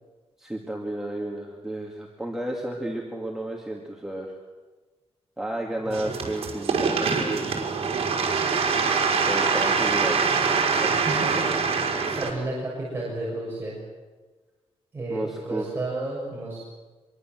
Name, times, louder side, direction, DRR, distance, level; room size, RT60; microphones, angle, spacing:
voice 1, 0.4-4.3 5.4-7.5 9.3-11.0 15.1-15.6, right 1 dB, 5° right, -1 dB, 2.5 m, -32 dB
voice 2, 5.8-6.2 10.9-13.8 14.9-16.6, right 2 dB, 20° right, -5 dB, 6.6 m, -32 dB
sound 1, 5.9-12.3, right 5 dB, 65° right, 5.2 m, -24 dB
26.5 x 23.0 x 7.7 m, 1.3 s
wide cardioid pair, 170°, 11 cm